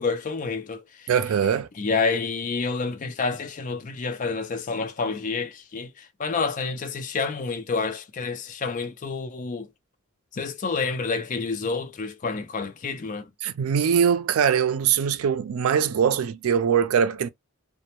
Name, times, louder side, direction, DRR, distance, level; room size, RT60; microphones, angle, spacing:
voice 1, 0.0-1.1 1.8-9.7 10.3-13.3, left 4 dB, 40° left, 0.4 m, -29 dB
voice 2, 1.1-1.7 13.4-17.3, right 7 dB, 80° right, 0.4 m, -22 dB
2.1 x 2.0 x 2.9 m
head